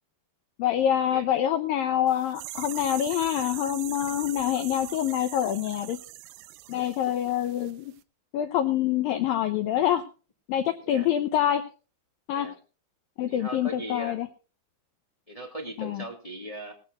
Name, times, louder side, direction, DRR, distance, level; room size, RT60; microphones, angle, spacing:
voice 1, 0.6-6.0 6.7-7.9 8.3-10.0 10.5-11.6 12.3-12.5 13.2-14.3 15.8-16.0, left 11 dB, 85° left, 8 dB, 2.0 m, -26 dB
sound 1, 2.1-7.7 8.0-8.1, right 17 dB, 85° right, 3.0 m, -41 dB
voice 2, 13.3-14.2 15.3-16.7, equal, 20° left, 1 dB, 0.8 m, -38 dB
18.5 x 15.5 x 2.5 m, 0.35 s
omnidirectional pair, 5.2 m